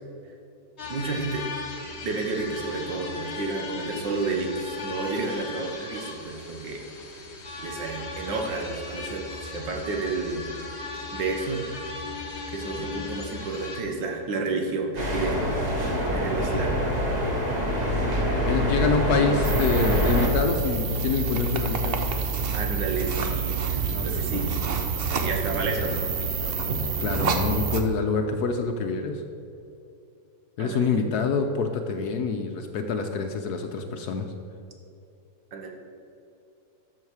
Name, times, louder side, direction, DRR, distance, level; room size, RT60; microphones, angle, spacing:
sound 1, 0.8-13.8, left 3 dB, 40° left, 1.4 m, -37 dB
voice 1, 0.9-1.4 2.0-7.3 7.6-10.5 11.1-11.7 12.5-15.5 15.8-16.8 22.5-24.5 25.1-26.1 30.6-31.1 35.5-35.7, right 3 dB, 80° right, 1 dB, 1.9 m, -31 dB
sound 2, 15.0-20.3, equal, 25° right, 1.4 m, -25 dB
voice 2, 18.4-22.0 23.9-24.5 27.0-29.2 30.6-34.3, left 4 dB, 70° left, 5 dB, 1.1 m, -26 dB
sound 3, 19.4-27.8, right 4 dB, 55° right, 0.6 m, -27 dB
12.5 x 6.5 x 4.8 m, 2.7 s
omnidirectional pair, 1.9 m